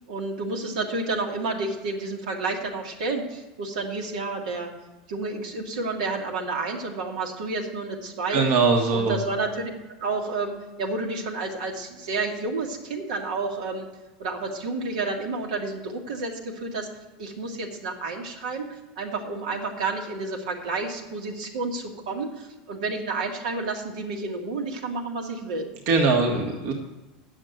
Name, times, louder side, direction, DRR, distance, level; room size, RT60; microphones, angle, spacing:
voice 1, 0.1-4.7 5.1-8.4 8.9-9.7 10.0-13.9 14.2-16.9 17.2-25.7, right 3 dB, 85° right, 1 dB, 1.8 m, -30 dB
voice 2, 8.3-9.2 25.9-26.7, right 4 dB, 60° right, 2 dB, 1.5 m, -21 dB
8.8 x 6.7 x 7.8 m, 1.1 s
supercardioid pair, 115°, 4 cm